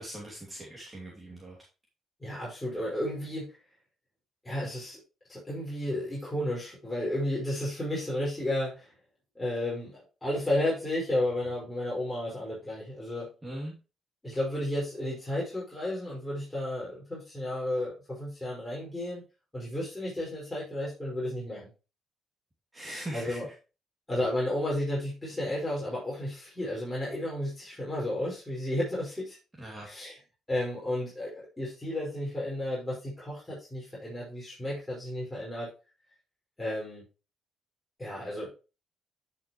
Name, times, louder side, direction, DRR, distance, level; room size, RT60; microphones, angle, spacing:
voice 1, 0.0-1.6 13.4-13.7 22.7-23.5 29.6-29.9, right 1 dB, 15° right, -3 dB, 2.7 m, -40 dB
voice 2, 2.2-3.5 4.4-5.0 5.3-8.9 9.4-13.3 14.2-19.2 19.5-21.7 23.1-23.5 24.1-29.4 29.8-30.1 30.5-35.7 36.6-37.0 38.0-38.5, left 1 dB, 10° left, -6 dB, 5.3 m, -32 dB
11.0 x 6.1 x 3.1 m, 0.31 s
cardioid pair, 90°, 0 cm